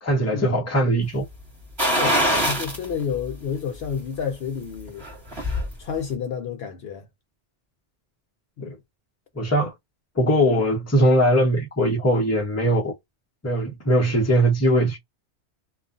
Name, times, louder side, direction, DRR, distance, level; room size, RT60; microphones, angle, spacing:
voice 1, 0.0-1.2 8.6-8.8 9.3-9.7 10.2-12.9 13.4-15.0, equal, 15° left, 0.7 m, -20 dB
voice 2, 1.8-5.1 5.8-7.1 8.6-8.7, left 7 dB, 65° left, 0.7 m, -30 dB
sound 1, 1.8-2.9 3.3-3.4 4.9-5.7 6.0-6.1, equal, 25° right, 1.3 m, -22 dB
2.4 x 2.3 x 2.4 m
omnidirectional pair, 1.2 m